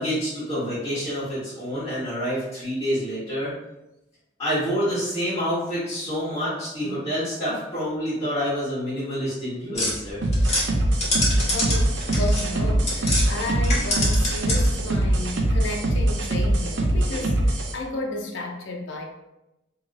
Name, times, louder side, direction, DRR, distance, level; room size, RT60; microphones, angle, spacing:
voice 1, 0.0-3.5 4.4-10.2, equal, 20° left, -15 dB, 1.3 m, -27 dB
sound 1, 9.7-13.3 13.6-14.8, left 1 dB, 35° left, 1.0 m, -26 dB
sound 2, 10.2-17.7, right 1 dB, 75° right, 0.5 m, -23 dB
voice 2, 11.3-19.0, left 1 dB, 75° left, 2 dB, 0.5 m, -33 dB
2.9 x 2.8 x 2.5 m, 0.93 s
head